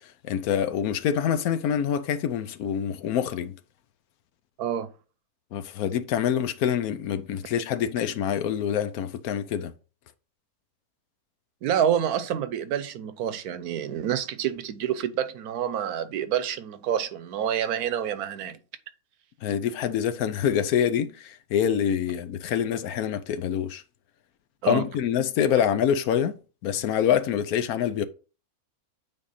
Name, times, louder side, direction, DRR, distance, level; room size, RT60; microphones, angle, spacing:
voice 1, 0.2-3.6 5.5-9.7 19.4-23.8 24.6-26.3 26.6-28.1, left 9 dB, 80° left, 1.1 m, -26 dB
voice 2, 4.6-4.9 11.6-18.6 24.6-24.9, right 9 dB, 85° right, 1.2 m, -28 dB
8.9 x 3.5 x 4.2 m
omnidirectional pair, 1.6 m